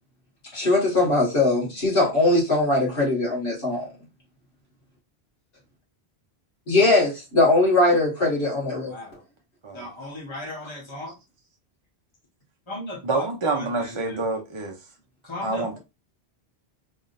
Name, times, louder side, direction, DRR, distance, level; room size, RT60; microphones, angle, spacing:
voice 1, 0.5-3.9 6.7-8.9, left 2 dB, 65° left, 2.3 m, -20 dB
voice 2, 8.8-9.2 9.7-11.1 12.7-13.2 13.5-13.6 15.3-15.8, left 1 dB, 30° left, 1.4 m, -36 dB
voice 3, 13.0-14.7 15.4-15.8, right 3 dB, 35° right, 0.7 m, -27 dB
3.9 x 3.6 x 2.6 m
omnidirectional pair, 1.1 m